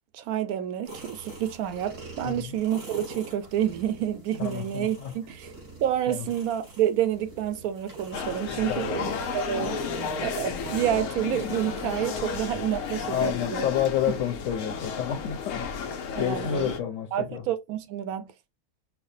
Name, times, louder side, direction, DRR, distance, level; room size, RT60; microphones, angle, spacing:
voice 1, 0.1-5.5 5.8-13.7 16.1-16.7 17.1-18.3, right 11 dB, 80° right, 1.1 m, -29 dB
sound 1, 0.8-12.4, right 3 dB, 65° right, 2.6 m, -44 dB
voice 2, 2.2-2.6 4.4-5.2 6.1-6.3 8.7-9.0 13.1-17.4, left 10 dB, 65° left, 1.0 m, -30 dB
sound 2, 8.1-16.8, left 6 dB, 85° left, 1.1 m, -33 dB
5.7 x 2.1 x 2.6 m
omnidirectional pair, 1.5 m